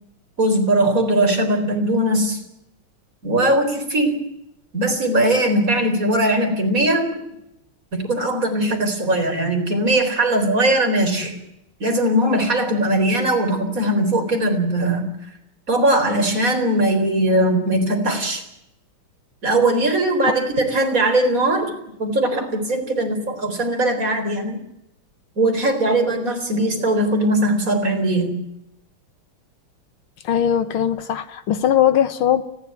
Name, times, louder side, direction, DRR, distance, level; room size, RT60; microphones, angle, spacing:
voice 1, 0.4-2.4 3.2-4.2 4.7-7.1 7.9-11.4 11.8-15.2 15.7-18.4 19.4-24.6 25.4-28.4, right 1 dB, 40° right, 4.4 m, -20 dB
voice 2, 30.2-32.4, left 10 dB, 80° left, 2.0 m, -19 dB
29.5 x 11.5 x 9.6 m
omnidirectional pair, 2.3 m